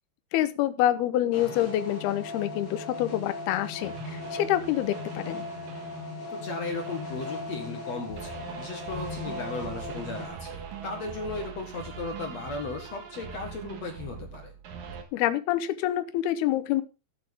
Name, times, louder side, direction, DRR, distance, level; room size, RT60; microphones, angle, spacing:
voice 1, 0.3-5.4 15.1-16.8, left 13 dB, 75° left, 13 dB, 2.4 m, -27 dB
sound 1, 1.3-10.3, left 3 dB, 30° left, 2.8 m, -38 dB
sound 2, 3.8-6.3 6.6-15.0, right 7 dB, 60° right, 2.9 m, -42 dB
voice 2, 6.3-14.5, left 3 dB, 55° left, 4 dB, 2.0 m, -36 dB
13.5 x 9.1 x 3.6 m, 0.30 s
omnidirectional pair, 5.2 m